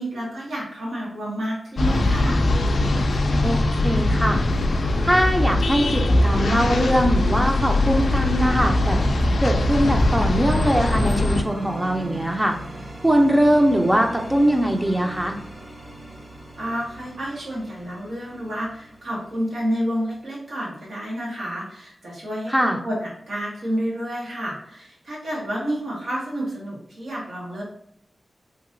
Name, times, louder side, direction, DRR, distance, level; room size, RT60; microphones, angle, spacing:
voice 1, 0.0-2.4 16.6-27.6, equal, 80° right, -4 dB, 1.2 m, -30 dB
sound 1, 1.8-11.4, left 2 dB, 75° left, 0.3 m, -21 dB
sound 2, 2.5-20.2, right 1 dB, 55° right, 0.8 m, -39 dB
voice 2, 3.4-4.4 5.0-9.0 9.4-12.6 13.0-15.4 22.5-22.8, equal, 15° right, 2 dB, 0.5 m, -21 dB
2.9 x 2.6 x 2.5 m, 0.74 s
cardioid pair, 40°, 0 cm